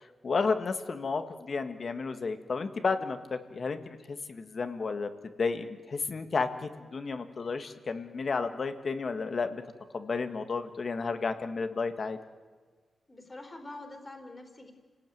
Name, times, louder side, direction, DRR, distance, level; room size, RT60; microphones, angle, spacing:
voice 1, 0.0-5.1 5.4-9.6 9.9-12.2, left 4 dB, 40° left, 8 dB, 1.6 m, -32 dB
voice 2, 13.1-14.7, left 2 dB, 15° left, 4 dB, 3.5 m, -45 dB
30.0 x 18.5 x 9.3 m, 1.5 s
wide cardioid pair, 170°, 0 cm